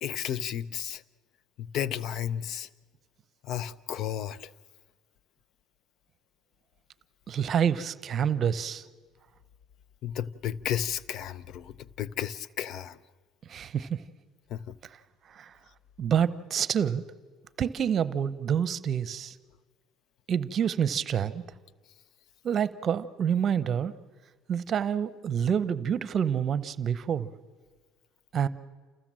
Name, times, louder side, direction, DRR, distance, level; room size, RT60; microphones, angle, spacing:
voice 1, 0.0-1.0 1.6-2.7 3.4-4.5 10.0-13.0 14.5-14.8, left 10 dB, 60° left, 0.6 m, -33 dB
voice 2, 7.3-8.8 13.5-14.0 15.3-15.5 16.0-17.0 17.6-19.3 20.3-21.4 22.4-23.9 24.5-27.3 28.3-28.5, right 8 dB, 45° right, 0.8 m, -27 dB
29.0 x 15.0 x 7.5 m
cardioid pair, 105°, 0 cm